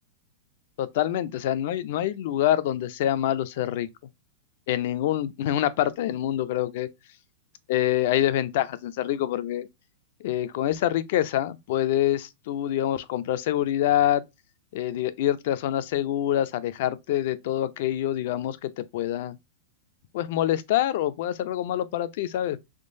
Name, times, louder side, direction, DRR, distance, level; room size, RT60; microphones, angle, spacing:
voice 1, 0.8-3.9 4.7-6.9 7.7-9.7 10.2-14.2 14.7-19.4 20.1-22.6, left 12 dB, 60° left, 0.4 m, -26 dB
3.6 x 3.2 x 2.6 m
hypercardioid pair, 140°, 0 cm